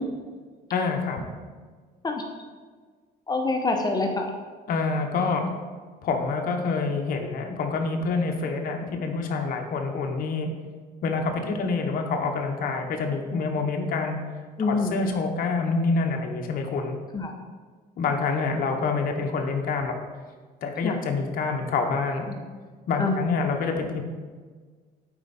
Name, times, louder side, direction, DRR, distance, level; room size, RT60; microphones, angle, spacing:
voice 1, 0.7-1.2 4.7-5.5 6.0-10.5 11.0-14.2 14.6-17.0 18.0-19.9 20.6-22.3 22.9-24.0, left 4 dB, 60° left, 3 dB, 0.9 m, -27 dB
voice 2, 3.3-4.3 14.6-15.1 17.1-17.3 20.8-21.0 23.0-23.2, left 3 dB, 25° left, 3 dB, 0.7 m, -25 dB
8.9 x 4.3 x 4.1 m, 1.5 s
cardioid pair, 110°, 17 cm